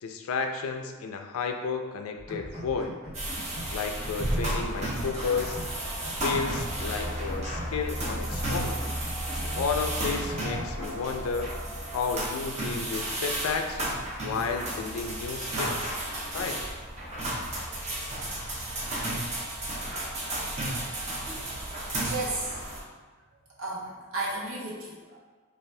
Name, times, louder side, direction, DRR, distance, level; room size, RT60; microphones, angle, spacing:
voice 1, 0.0-2.9 3.7-5.6 6.2-8.8 9.3-11.5 11.9-13.8 14.2-16.0 16.3-16.6, left 5 dB, 90° left, 5 dB, 0.3 m, -32 dB
sound 1, 2.2-3.8 4.0-5.8 6.0-7.8 8.0-9.8 10.0-10.9, equal, 5° left, 1.4 m, -42 dB
sound 2, 3.1-22.8, right 1 dB, 35° right, 0.6 m, -33 dB
voice 2, 22.0-22.6 23.6-25.2, right 2 dB, 75° right, -5 dB, 0.8 m, -33 dB
2.7 x 2.4 x 3.1 m, 1.3 s
head